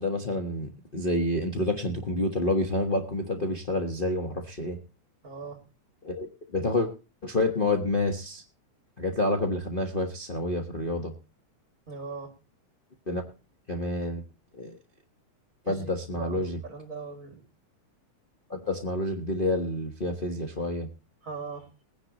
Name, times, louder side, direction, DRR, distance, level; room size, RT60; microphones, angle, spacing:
voice 1, 0.0-4.8 6.0-6.9 7.2-8.4 9.0-11.1 13.1-13.2 13.7-14.2 14.5-14.8 15.7-16.6 18.5-20.9, left 2 dB, 65° left, 2 dB, 0.5 m, -28 dB
voice 2, 5.2-5.6 11.9-12.3 15.6-17.4 21.2-21.7, right 4 dB, 30° right, 5 dB, 2.6 m, -39 dB
21.5 x 10.5 x 3.0 m, 0.30 s
omnidirectional pair, 3.4 m